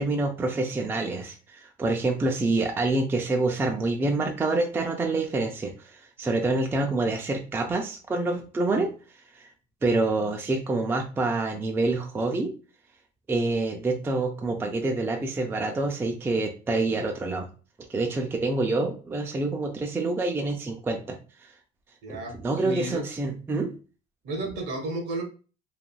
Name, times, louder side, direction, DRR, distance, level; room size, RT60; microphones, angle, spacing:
voice 1, 0.0-8.9 9.3-9.5 9.8-12.5 13.3-17.5 17.9-21.2 22.1-23.7, right 2 dB, 10° right, 3 dB, 0.3 m, -27 dB
voice 2, 22.0-23.0 24.2-25.2, right 2 dB, 60° right, 2 dB, 1.1 m, -33 dB
3.2 x 2.3 x 2.2 m, 0.35 s
cardioid pair, 130°, 19 cm